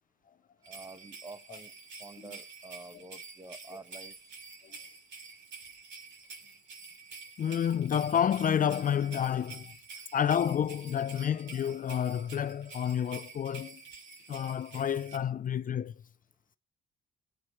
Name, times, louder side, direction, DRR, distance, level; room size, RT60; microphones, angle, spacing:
sound 1, 0.6-15.2, right 4 dB, 70° right, 5.2 m, -48 dB
voice 1, 0.7-1.7 2.0-4.4 9.9-10.0, right 3 dB, 20° right, 1.2 m, -49 dB
voice 2, 7.4-9.7 10.1-13.8 14.3-15.9, left 9 dB, 45° left, 0.5 m, -29 dB
18.5 x 9.2 x 3.1 m
cardioid pair, 90°, 20 cm